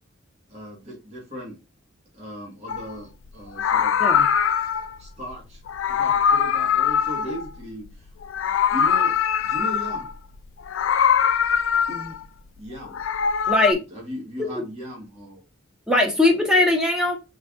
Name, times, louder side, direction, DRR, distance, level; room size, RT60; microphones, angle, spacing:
voice 1, 0.5-1.6 2.1-4.0 5.0-5.6 5.9-8.1 8.7-10.1 12.6-13.0 13.9-15.4, equal, 35° right, 2.0 m, -37 dB
Meow, 2.7-2.9 3.5-4.9 5.7-7.9 8.2-10.1 10.6-12.2 12.8-13.7, left 7 dB, 85° left, 0.4 m, -22 dB
voice 2, 13.5-13.8 15.9-17.2, left 2 dB, 5° right, 1.2 m, -20 dB
5.2 x 3.7 x 2.5 m
head